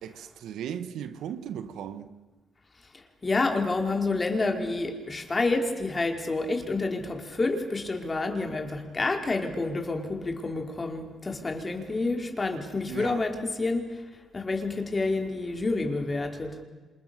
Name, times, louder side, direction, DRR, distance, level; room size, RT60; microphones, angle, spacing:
voice 1, 0.0-2.1 12.9-13.2, right 9 dB, 75° right, 1.6 m, -37 dB
voice 2, 2.8-16.6, left 3 dB, 30° left, 4.6 m, -29 dB
28.0 x 27.0 x 6.9 m
supercardioid pair, 60°, 0 cm